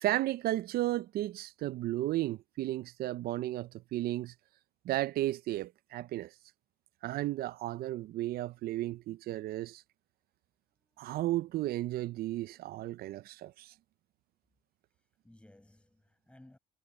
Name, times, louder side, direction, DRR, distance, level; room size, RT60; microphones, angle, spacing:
voice 1, 0.0-4.3 4.8-6.3 7.0-9.8 11.0-13.7, right 15 dB, 65° right, 0.5 m, -34 dB
voice 2, 10.7-11.7 14.9-16.6, left 1 dB, 5° left, 7.8 m, -61 dB
cardioid pair, 110°, 17 cm